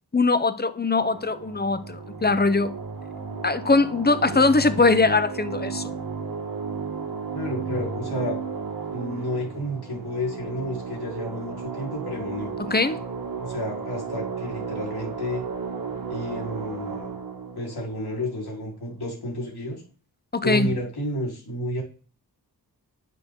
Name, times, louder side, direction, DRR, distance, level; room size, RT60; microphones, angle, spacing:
voice 1, 0.1-2.7 3.4-5.9 12.6-13.0 20.3-20.7, left 3 dB, 25° left, 0.9 m, -21 dB
sound 1, 1.0-19.1, right 5 dB, 60° right, 1.8 m, -34 dB
voice 2, 7.3-8.4 8.9-12.5 13.3-15.4 16.1-17.1 17.5-19.8 20.4-21.8, equal, 70° left, 4.5 m, -31 dB
10.5 x 7.7 x 3.8 m
wide cardioid pair, 90°, 39 cm